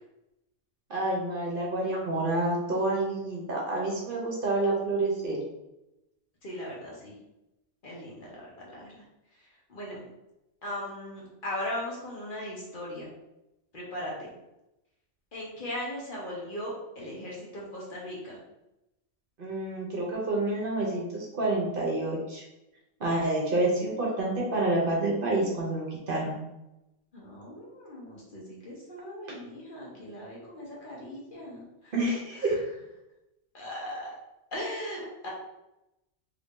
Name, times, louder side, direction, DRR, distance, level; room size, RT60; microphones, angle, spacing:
voice 1, 0.9-5.4 19.4-22.4 23.0-26.4 31.9-32.5, right 2 dB, 55° right, -2 dB, 0.8 m, -28 dB
voice 2, 6.4-7.2 7.8-9.0 9.7-10.1 10.6-13.1 13.7-14.3 15.3-18.4 27.1-31.9 32.4-32.6 33.5-34.1 34.5-35.3, left 1 dB, 50° left, -4 dB, 1.0 m, -38 dB
2.8 x 2.6 x 3.5 m, 0.93 s
omnidirectional pair, 1.2 m